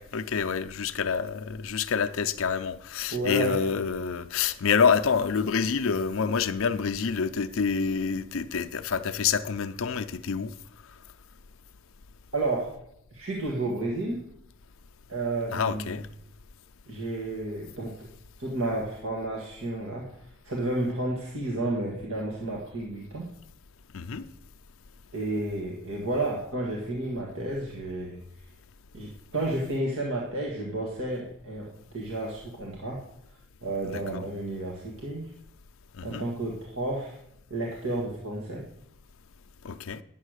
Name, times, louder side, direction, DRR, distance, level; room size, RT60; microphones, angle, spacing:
voice 1, 0.0-10.5 15.5-16.1 23.9-24.2 33.9-34.3 35.9-36.3 39.6-40.0, left 6 dB, 65° left, 0.5 m, -27 dB
voice 2, 3.1-3.6 12.3-12.7 13.1-14.2 15.1-15.8 16.9-18.1 18.4-20.1 20.4-23.3 25.1-28.2 28.9-33.0 33.6-35.3 36.0-37.2 37.5-38.6, right 2 dB, 65° right, 1.7 m, -31 dB
9.8 x 7.7 x 6.4 m
head